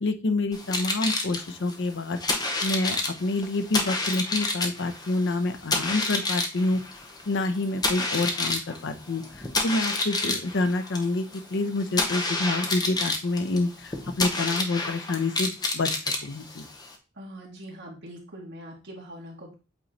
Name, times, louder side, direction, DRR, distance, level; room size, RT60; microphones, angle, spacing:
voice 1, 0.0-2.2 2.6-6.8 7.3-11.2 11.5-15.9 16.2-16.7, left 2 dB, 60° left, 9 dB, 0.6 m, -27 dB
sound 1, 0.5-17.0, left 2 dB, 20° left, 0.8 m, -29 dB
voice 2, 17.1-19.5, equal, 60° right, -3 dB, 2.2 m, -42 dB
8.2 x 3.0 x 3.8 m, 0.31 s
head